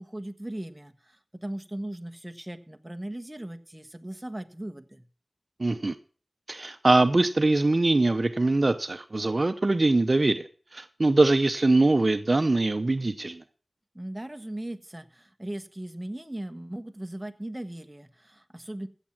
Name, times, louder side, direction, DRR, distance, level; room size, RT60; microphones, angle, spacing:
voice 1, 0.0-5.0 13.9-18.9, right 1 dB, 15° right, 8 dB, 1.1 m, -38 dB
voice 2, 5.6-6.0 6.5-13.4, right 2 dB, 45° right, 9 dB, 0.7 m, -23 dB
15.5 x 7.2 x 5.9 m, 0.41 s
wide cardioid pair, 60°, 0 cm